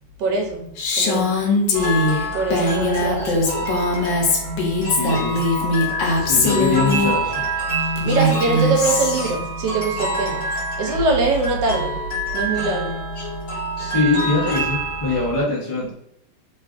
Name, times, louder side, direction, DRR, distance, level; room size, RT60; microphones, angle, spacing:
voice 1, 0.2-0.7 1.0-1.4 2.3-3.8 4.2-4.7 7.8-10.4 10.8-12.0 12.3-13.0, right 2 dB, 80° right, 2 dB, 1.2 m, -23 dB
Female speech woman speaking, 0.8-7.1 8.0-9.3, left 2 dB, 90° left, 1.3 m, -21 dB
sound 1, 1.7-15.4, right 1 dB, 50° left, 1.4 m, -27 dB
voice 2, 5.0-5.4 6.3-7.4 13.8-15.9, left 3 dB, 35° left, -5 dB, 0.5 m, -22 dB
3.2 x 2.4 x 2.4 m, 0.70 s
omnidirectional pair, 1.9 m